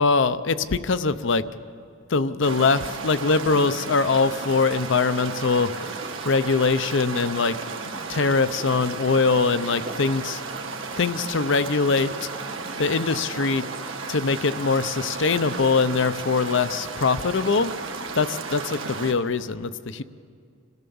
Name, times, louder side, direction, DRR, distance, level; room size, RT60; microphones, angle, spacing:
voice 1, 0.0-1.5 2.1-5.9 6.2-7.6 8.1-10.4 11.0-12.3 12.8-13.6 14.1-17.7 18.2-20.0, left 4 dB, 65° left, 14 dB, 0.7 m, -22 dB
sound 1, 2.4-19.1, right 4 dB, 75° right, 1.6 m, -34 dB
26.5 x 16.5 x 7.1 m, 2.3 s
head